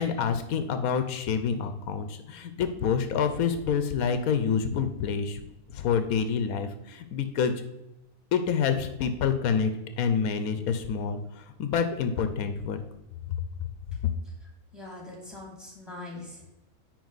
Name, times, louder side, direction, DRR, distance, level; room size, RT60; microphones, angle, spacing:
voice 1, 0.0-5.4 5.7-7.5 8.3-9.7 10.0-11.2 11.6-12.8, left 6 dB, 85° left, 9 dB, 1.1 m, -27 dB
voice 2, 14.2-16.5, left 2 dB, ahead, -1 dB, 2.2 m, -43 dB
9.3 x 4.5 x 4.0 m, 0.91 s
omnidirectional pair, 1.5 m